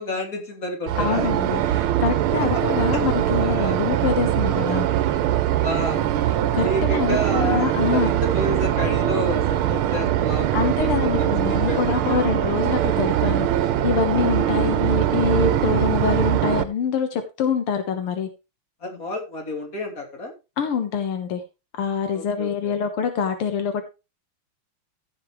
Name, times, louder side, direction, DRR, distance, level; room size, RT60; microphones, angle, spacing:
voice 1, 0.0-1.3 2.5-2.6 2.9-3.0 3.4-3.7 5.6-6.1 6.6-12.2 14.4-14.7 18.8-20.3 22.1-22.7, left 1 dB, 40° left, 2 dB, 3.4 m, -30 dB
sound 1, 0.9-16.6, right 12 dB, 80° right, 1.6 m, -22 dB
voice 2, 1.0-4.9 6.5-8.1 10.5-18.3 20.6-21.4 21.8-23.8, left 6 dB, 80° left, 7 dB, 2.1 m, -25 dB
15.0 x 7.5 x 3.1 m, 0.28 s
omnidirectional pair, 2.4 m